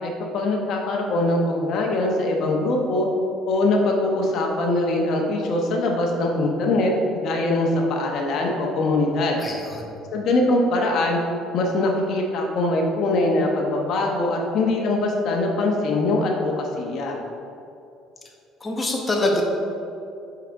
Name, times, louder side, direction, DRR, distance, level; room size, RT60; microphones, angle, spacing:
voice 1, 0.0-3.1 3.5-9.4 10.1-11.2 11.5-17.2, left 2 dB, 60° left, 1 dB, 1.0 m, -22 dB
voice 2, 9.4-9.9 18.6-19.4, left 2 dB, 20° left, 0 dB, 1.1 m, -25 dB
7.9 x 5.1 x 3.5 m, 2.6 s
cardioid pair, 105°, 0 cm